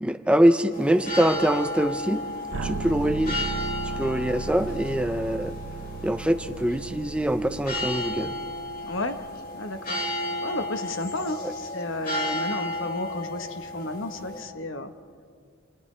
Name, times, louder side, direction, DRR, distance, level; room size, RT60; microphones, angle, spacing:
voice 1, 0.0-2.2 2.6-3.4 4.0-5.6 6.0-8.3 11.4-11.5, right 1 dB, 5° right, 8 dB, 0.5 m, -23 dB
sound 1, 0.7-14.4, left 1 dB, 45° left, 3.5 m, -33 dB
sound 2, 2.5-9.4, right 4 dB, 80° right, 0.7 m, -36 dB
voice 2, 8.8-9.2 9.5-10.0 10.4-14.9, left 2 dB, 65° left, 8 dB, 1.2 m, -32 dB
29.0 x 28.0 x 3.4 m, 2.1 s
head